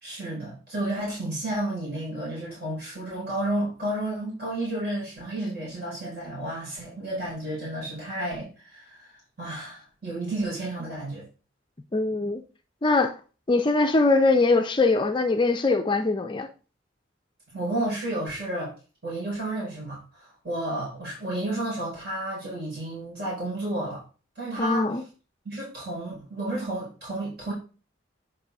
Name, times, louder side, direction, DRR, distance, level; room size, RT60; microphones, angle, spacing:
voice 1, 0.0-11.2 17.5-18.7 19.0-24.0 24.4-24.9 25.4-27.5, right 1 dB, 55° right, 4.5 m, -31 dB
voice 2, 11.9-12.4 12.8-13.1 13.5-16.5 24.6-25.0, left 3 dB, 25° left, 0.4 m, -22 dB
8.0 x 5.3 x 3.4 m
head